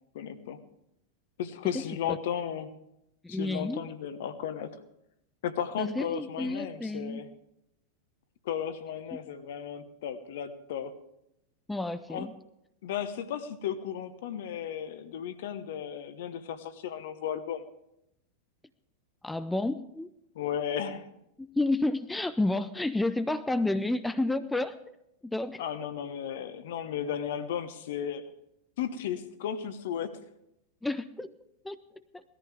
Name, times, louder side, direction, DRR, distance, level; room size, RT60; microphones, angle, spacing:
voice 1, 0.1-0.6 1.4-2.7 3.3-4.7 5.4-7.3 8.4-10.9 12.1-12.3 12.8-17.6 20.3-21.1 25.6-28.3 28.8-30.1, left 9 dB, 55° left, 11 dB, 1.1 m, -34 dB
voice 2, 3.2-3.8 5.8-7.2 11.7-12.3 19.2-20.1 21.4-24.7 25.2-25.6 30.8-31.3 31.6-31.8 32.1-32.2, left 2 dB, 5° left, 11 dB, 0.5 m, -30 dB
19.0 x 14.0 x 3.5 m, 0.82 s
figure-of-eight pair, 90°, 0 cm